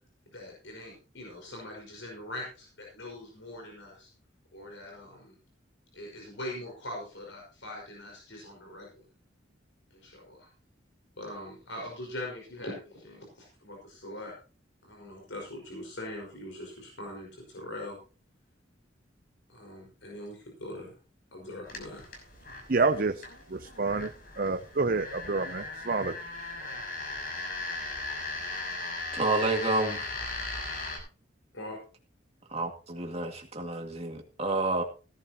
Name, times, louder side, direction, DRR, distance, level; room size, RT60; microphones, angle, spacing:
voice 1, 0.3-4.1 4.5-5.3 5.9-9.0 9.9-10.5 11.2-14.3 14.8-18.0 19.5-21.0 21.3-22.0 31.5-31.8, left 1 dB, 80° left, -1 dB, 5.3 m, -42 dB
sound 1, 21.7-31.0, left 3 dB, 50° left, 6.0 m, -38 dB
voice 2, 22.7-23.2 23.5-24.1 24.4-26.1, right 3 dB, 50° right, 8 dB, 0.7 m, -28 dB
voice 3, 29.1-30.1 32.5-34.8, right 2 dB, 30° right, 2 dB, 2.2 m, -29 dB
17.0 x 12.0 x 3.0 m, 0.35 s
head